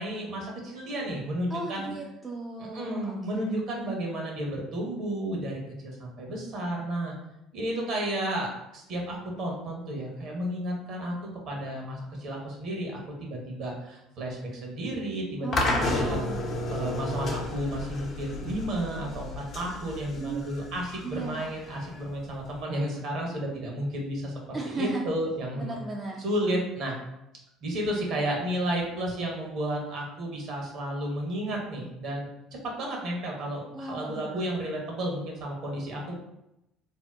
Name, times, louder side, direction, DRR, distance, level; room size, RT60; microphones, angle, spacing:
voice 1, 0.0-1.9 2.6-7.1 7.5-11.1 11.5-16.2 16.7-25.8 26.2-26.9 27.6-32.3 32.8-36.1, right 1 dB, 60° right, -1 dB, 0.9 m, -32 dB
voice 2, 1.5-3.5 15.4-16.4 20.2-20.5 21.0-21.4 24.5-25.0 25.6-26.2 33.7-34.4, right 2 dB, 30° right, -1 dB, 0.4 m, -36 dB
sound 1, 15.5-22.6, left 2 dB, 50° left, 0.7 m, -32 dB
2.7 x 2.0 x 3.4 m, 0.87 s
hypercardioid pair, 65°, 0 cm